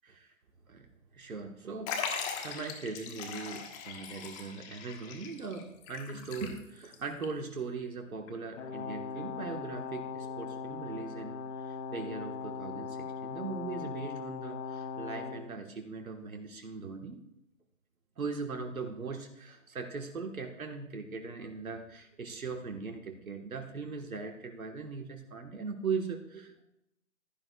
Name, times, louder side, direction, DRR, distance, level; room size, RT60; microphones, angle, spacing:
voice 1, 0.0-0.3 0.7-0.9 1.1-2.0 2.4-17.2 18.2-26.6, right 4 dB, 85° right, 3 dB, 1.5 m, -39 dB
Liquid, 1.9-6.9 7.2-7.3 8.3-8.4, left 6 dB, 20° left, 1.3 m, -39 dB
Brass instrument, 8.5-15.4, left 5 dB, 60° left, 2.8 m, -39 dB
15.5 x 10.5 x 2.3 m, 0.84 s
hypercardioid pair, 145°, 41 cm